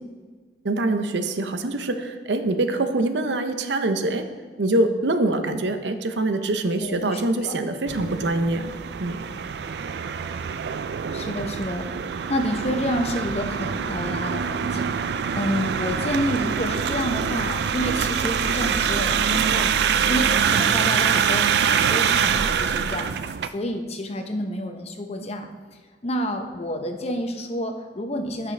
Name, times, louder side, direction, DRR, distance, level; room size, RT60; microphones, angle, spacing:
voice 1, 0.6-4.3 4.6-8.7 9.0-9.2, right 2 dB, 85° right, 7 dB, 0.7 m, -24 dB
voice 2, 6.8-7.6 11.1-11.9 12.3-25.5 26.0-28.5, equal, 35° left, 5 dB, 0.8 m, -29 dB
sound 1, 7.9-23.5, right 7 dB, 65° right, 0.3 m, -24 dB
15.0 x 6.0 x 3.3 m, 1.5 s
head